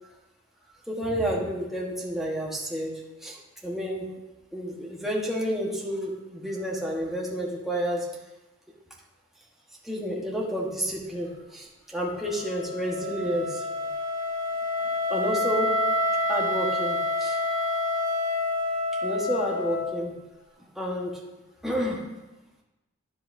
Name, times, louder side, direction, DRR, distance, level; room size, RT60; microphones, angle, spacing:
voice 1, 0.9-2.9 3.2-3.4 3.6-4.1 4.5-8.1 9.8-13.6 15.1-15.8 16.3-17.4 19.0-20.1 20.7-21.2 21.6-22.0, equal, ahead, -3 dB, 1.3 m, -30 dB
Wind instrument woodwind instrument, 12.1-20.1, left 1 dB, 40° left, 1.6 m, -28 dB
10.5 x 7.6 x 2.7 m, 1.0 s
head